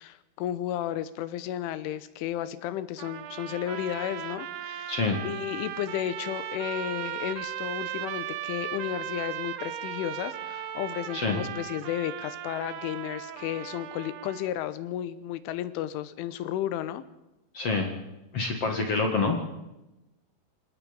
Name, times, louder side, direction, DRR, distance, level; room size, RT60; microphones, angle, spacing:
voice 1, 0.0-4.9 5.2-17.0, left 12 dB, 90° left, 14 dB, 3.5 m, -33 dB
sound 1, 3.0-14.5, right 11 dB, 70° right, 2.9 m, -37 dB
voice 2, 17.5-17.9 18.3-19.4, left 3 dB, 45° left, 3 dB, 2.1 m, -26 dB
26.0 x 19.0 x 5.4 m, 0.94 s
omnidirectional pair, 5.5 m